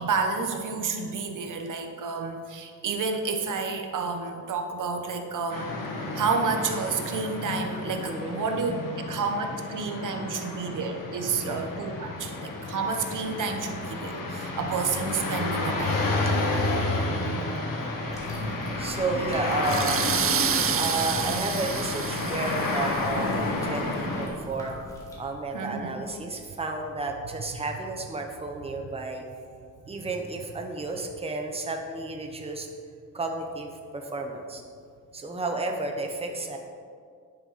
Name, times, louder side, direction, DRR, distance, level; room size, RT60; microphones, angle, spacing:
voice 1, 0.0-16.1 25.5-26.0, right 4 dB, 70° right, 5 dB, 1.1 m, -30 dB
sound 1, 5.5-24.3, left 2 dB, 80° left, 2.1 m, -30 dB
voice 2, 8.1-8.4 11.4-11.6 17.1-17.3 18.8-20.0 20.7-24.8 25.2-29.2 29.9-32.7 33.1-34.6 35.1-36.6, right 3 dB, 20° right, 3 dB, 1.0 m, -32 dB
sound 2, 18.0-25.2, equal, 10° left, 2.4 m, -43 dB
sound 3, 19.6-23.1, right 9 dB, 45° right, 0.5 m, -29 dB
10.5 x 9.8 x 4.2 m, 2.1 s
wide cardioid pair, 150°, 33 cm